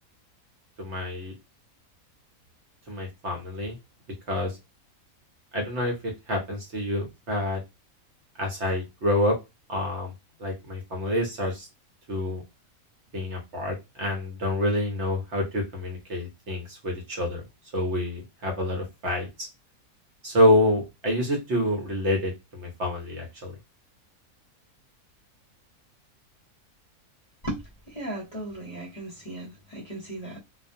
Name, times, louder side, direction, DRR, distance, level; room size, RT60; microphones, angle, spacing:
voice 1, 0.8-1.4 2.9-3.8 4.3-4.6 5.5-7.6 8.4-9.4 9.7-10.1 10.4-11.7 12.1-12.4 13.1-17.4 17.7-19.5 20.2-23.6, left 1 dB, 60° right, 1.0 m, -27 dB
voice 2, 27.9-30.4, right 1 dB, 35° left, 0.8 m, -36 dB
2.4 x 2.2 x 2.6 m
omnidirectional pair, 1.5 m